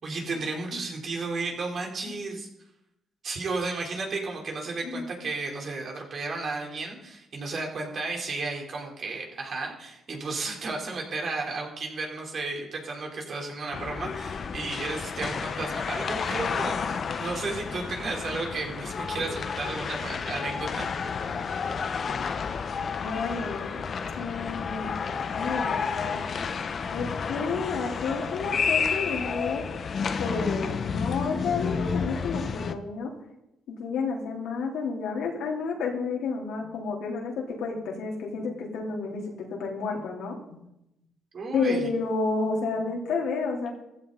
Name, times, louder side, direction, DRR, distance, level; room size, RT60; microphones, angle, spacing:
voice 1, 0.0-2.5 3.2-20.9 41.3-41.9, right 3 dB, 50° right, 0 dB, 3.8 m, -33 dB
sound 1, 13.7-32.7, left 5 dB, 50° left, 1.0 m, -31 dB
voice 2, 23.0-23.8 24.1-25.0 25.3-26.2 26.9-29.6 30.1-33.1 33.7-39.2 39.5-40.6 41.5-43.7, left 4 dB, 80° left, -2 dB, 3.8 m, -30 dB
15.0 x 14.0 x 4.1 m, 0.84 s
cardioid pair, 90°, 0 cm